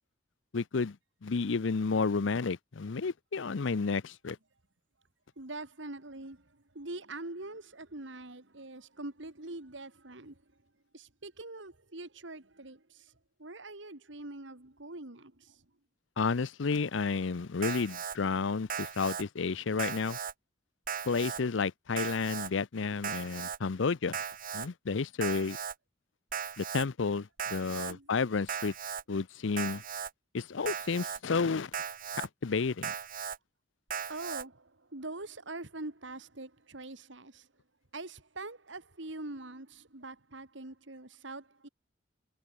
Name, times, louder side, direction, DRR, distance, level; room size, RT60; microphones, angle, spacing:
voice 1, 0.5-1.0 1.2-4.4 16.2-20.2 21.1-24.2 24.5-25.6 26.6-28.7 29.1-29.8 30.3-31.7 32.2-32.9, left 4 dB, 70° left, 0.6 m, -31 dB
voice 2, 5.4-10.4 10.9-13.1 13.4-15.7 27.8-28.1 34.1-37.5 37.9-41.7, right 2 dB, 70° right, 2.4 m, -44 dB
Alarm, 17.6-18.2 18.7-19.2 19.8-20.3 20.9-21.4 22.0-22.5 23.0-23.6 24.1-24.7 25.2-25.7 26.3-26.9 27.4-27.9 28.5-29.0 29.6-30.1 30.7-31.2 31.7-32.3 32.8-33.4 33.9-34.4, right 7 dB, 45° right, 2.2 m, -37 dB
head